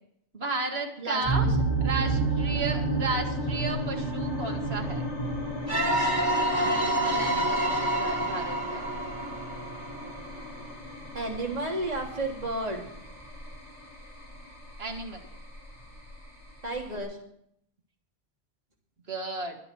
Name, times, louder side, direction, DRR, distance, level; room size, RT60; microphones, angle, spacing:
voice 1, 0.3-1.4 1.8-5.0 6.6-8.9 14.8-15.3 19.1-19.6, right 3 dB, 65° right, 4 dB, 2.1 m, -34 dB
voice 2, 1.0-2.2 11.1-12.8 16.6-17.2, right 2 dB, 35° right, -1 dB, 3.2 m, -33 dB
sound 1, 1.2-17.0, right 2 dB, 70° left, 4.0 m, -32 dB
sound 2, 5.7-10.3, right 1 dB, 85° right, 3.0 m, -28 dB
22.5 x 10.0 x 4.6 m, 0.72 s
omnidirectional pair, 1.1 m